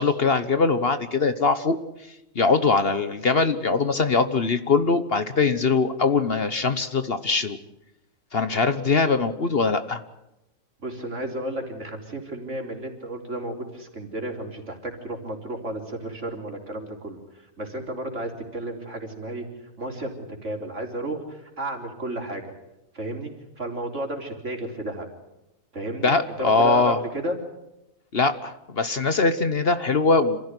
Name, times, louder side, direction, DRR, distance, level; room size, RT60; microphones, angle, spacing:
voice 1, 0.0-1.8 2.3-7.6 8.3-10.0 26.0-27.0 28.1-30.4, left 4 dB, 45° left, 11 dB, 1.2 m, -22 dB
voice 2, 10.8-17.2 17.6-19.5 19.8-20.1 20.4-22.4 22.9-23.3 23.6-25.1 25.7-26.1 26.4-27.4, right 1 dB, 60° right, 2 dB, 4.1 m, -32 dB
27.0 x 15.5 x 9.8 m, 0.90 s
omnidirectional pair, 1.4 m